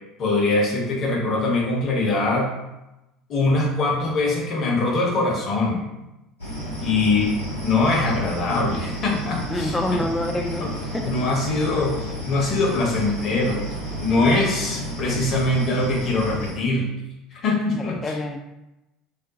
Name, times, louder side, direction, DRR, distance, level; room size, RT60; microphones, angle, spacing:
voice 1, 0.2-2.5 3.3-5.9 6.8-7.3 7.6-10.1 10.6-10.7 11.0-16.9 17.3-18.2, left 2 dB, 45° left, -2 dB, 0.9 m, -23 dB
sound 1, 6.4-16.5, equal, 90° left, 1.0 m, -32 dB
voice 2, 9.5-11.1 17.7-18.4, left 1 dB, 20° left, 5 dB, 0.4 m, -27 dB
2.5 x 2.1 x 3.8 m, 0.96 s
figure-of-eight pair, 65°, 0 cm